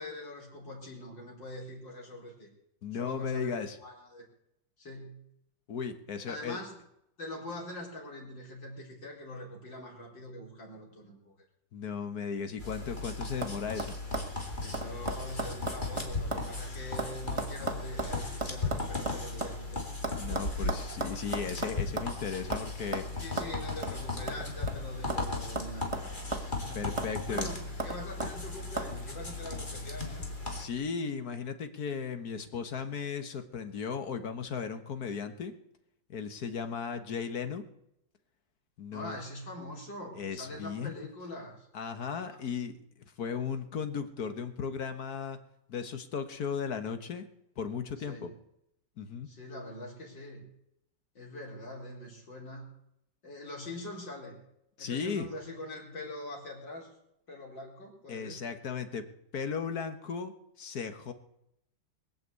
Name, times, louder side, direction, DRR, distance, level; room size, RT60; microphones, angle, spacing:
voice 1, 0.0-2.5 2.9-4.2 4.8-5.2 6.2-6.8 7.2-11.3 14.6-19.9 23.2-26.8 27.3-30.3 38.9-41.7 42.3-42.4 48.1-48.3 49.3-50.4 51.1-52.7 53.2-54.4 54.8-56.9 57.3-58.4, left 1 dB, 75° left, -2 dB, 5.1 m, -43 dB
voice 2, 2.8-3.8 5.7-6.6 11.7-14.0 20.2-23.0 26.7-27.5 30.5-35.5 36.1-37.6 38.8-39.2 40.1-40.9 41.7-42.8 43.2-45.4 45.7-47.2 47.6-48.3 49.0-49.3 54.8-55.3 58.1-59.0 59.3-60.3 60.6-61.1, left 6 dB, 55° left, 8 dB, 1.6 m, -36 dB
sound 1, 12.6-30.6, left 3 dB, 25° left, 2.7 m, -37 dB
sound 2, 12.6-13.0 13.4-13.5 13.8-16.5 16.7-19.6 20.0-22.2 22.5-22.7 22.9-23.1 23.4-23.5 23.8-24.0 24.3-25.3 25.6-26.6 27.0-27.1 27.4-28.3 28.8-28.9, right 3 dB, 20° right, 1.2 m, -36 dB
21.5 x 7.7 x 8.1 m, 0.80 s
omnidirectional pair, 2.0 m